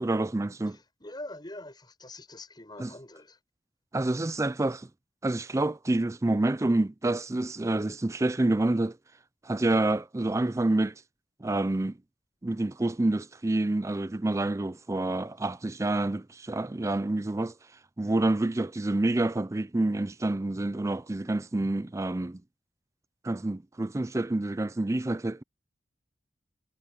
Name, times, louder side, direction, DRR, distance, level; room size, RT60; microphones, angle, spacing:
voice 1, 0.0-0.8 2.8-2.9 3.9-4.9 5.2-9.0 9.4-10.9 11.4-12.0 12.4-17.5 18.0-22.4 23.2-25.4, right 2 dB, 15° right, 0.4 m, -28 dB
voice 2, 0.7-3.4, left 1 dB, 25° left, 7.1 m, -44 dB
head